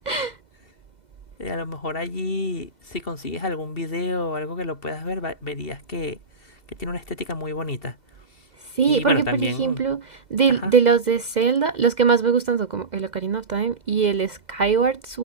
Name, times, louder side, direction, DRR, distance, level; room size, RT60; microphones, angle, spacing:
voice 1, 0.1-0.4 8.7-15.2, right 6 dB, 45° right, 0.7 m, -21 dB
voice 2, 1.4-6.2 6.8-8.0 8.9-9.8 10.5-10.7, left 2 dB, 50° left, 3.7 m, -29 dB
omnidirectional pair, 1.2 m